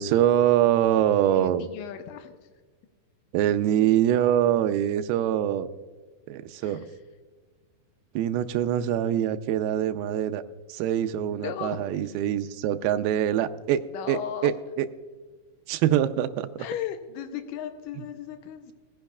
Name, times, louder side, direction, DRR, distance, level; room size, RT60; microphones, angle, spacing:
voice 1, 0.0-1.7 3.3-5.7 6.3-6.9 8.2-10.4 10.7-13.8 14.1-14.5 14.8-14.9 15.7-16.5, right 11 dB, 80° right, 9 dB, 2.3 m, -24 dB
voice 2, 1.3-2.5 6.6-6.9 11.3-12.0 13.9-14.5 16.6-18.7, left 10 dB, 85° left, 7 dB, 1.9 m, -36 dB
19.5 x 10.0 x 2.3 m, 1.4 s
omnidirectional pair, 4.7 m